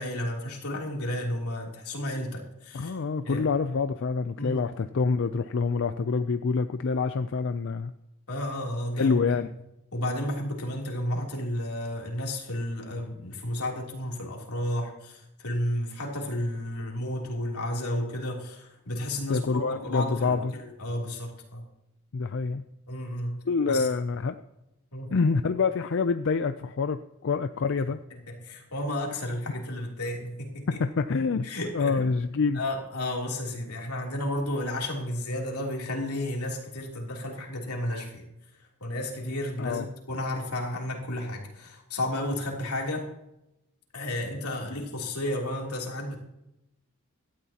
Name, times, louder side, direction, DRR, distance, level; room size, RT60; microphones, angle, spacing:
voice 1, 0.0-2.9 3.2-3.4 4.4-4.6 8.3-9.2 9.9-21.6 22.9-23.4 23.7-23.9 24.9-25.1 28.3-30.8 31.4-32.0 32.5-38.2 38.8-43.1 43.9-46.2, left 1 dB, 85° left, -1 dB, 3.2 m, -32 dB
voice 2, 2.7-7.9 9.0-9.5 19.3-20.5 22.1-22.6 23.5-24.4 25.1-28.0 30.7-31.5 31.7-32.6 39.6-39.9, left 4 dB, 55° left, 10 dB, 0.4 m, -26 dB
17.5 x 12.5 x 2.9 m, 0.87 s
head